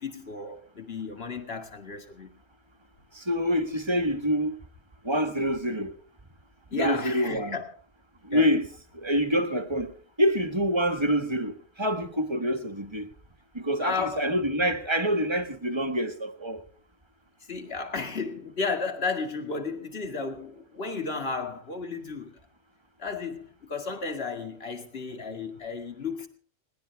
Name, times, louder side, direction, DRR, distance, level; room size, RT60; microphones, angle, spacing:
voice 1, 0.0-2.3 6.7-7.7 8.3-8.5 13.8-14.3 17.5-22.4 23.0-26.3, left 4 dB, 50° left, 2.3 m, -33 dB
voice 2, 3.1-4.6 5.0-6.0 6.7-7.6 8.2-8.7 8.9-9.9 10.2-13.1 13.5-16.6, equal, 20° right, 1.4 m, -26 dB
20.5 x 19.0 x 3.4 m
omnidirectional pair, 1.4 m